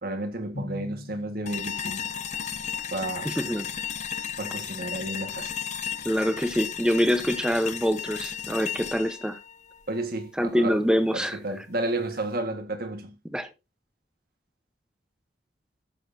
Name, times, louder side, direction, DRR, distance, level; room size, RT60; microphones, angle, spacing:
voice 1, 0.0-2.0 2.9-3.3 4.4-5.5 9.9-10.8 11.1-13.1, right 2 dB, 55° right, 1.8 m, -32 dB
Drum, 0.5-2.7, left 1 dB, 60° left, 1.9 m, -42 dB
sound 1, 1.4-10.5, left 8 dB, 40° left, 0.6 m, -34 dB
voice 2, 3.2-3.7 6.0-9.4 10.4-11.4 13.3-13.5, equal, 5° right, 1.0 m, -25 dB
14.0 x 7.2 x 2.8 m
head